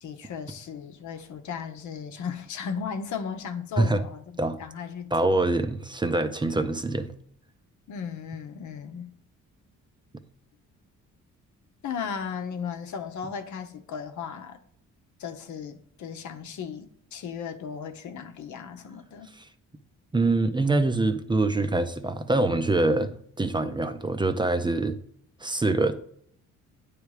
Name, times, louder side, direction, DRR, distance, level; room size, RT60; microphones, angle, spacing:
voice 1, 0.0-5.4 7.9-9.1 11.8-14.6 15.2-19.3, left 6 dB, 70° left, 0.9 m, -36 dB
voice 2, 5.1-7.1 19.4-19.5 20.1-23.1 23.4-25.0 25.4-25.9, right 2 dB, 15° right, 0.5 m, -24 dB
9.3 x 3.3 x 4.9 m
cardioid pair, 90°, 30 cm